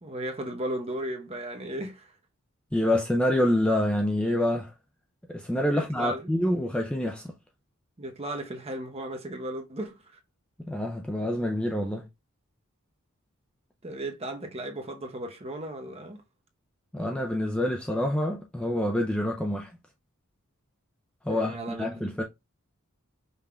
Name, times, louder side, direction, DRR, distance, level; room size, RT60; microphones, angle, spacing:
voice 1, 0.0-2.1 5.7-6.3 8.0-10.2 13.8-16.2 21.2-22.1, right 1 dB, 25° right, 0.8 m, -36 dB
voice 2, 2.7-4.7 5.3-7.3 10.6-12.1 16.9-19.7 21.2-22.2, left 1 dB, 5° left, 0.4 m, -27 dB
5.4 x 3.5 x 2.3 m
head